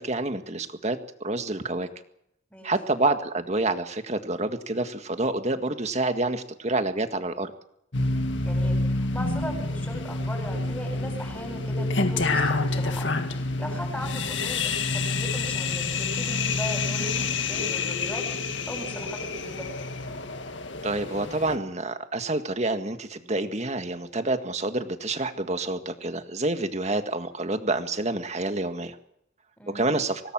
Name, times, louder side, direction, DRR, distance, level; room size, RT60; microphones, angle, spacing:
voice 1, 0.0-1.9 2.6-7.5 20.8-29.0 29.7-30.2, right 2 dB, 35° right, 8 dB, 1.9 m, -28 dB
sound 1, 7.9-21.6, left 3 dB, 70° left, 2.0 m, -28 dB
voice 2, 8.4-13.0 13.3-19.7 29.6-29.9, equal, 10° left, 3 dB, 7.9 m, -38 dB
25.5 x 19.0 x 7.6 m, 0.77 s
head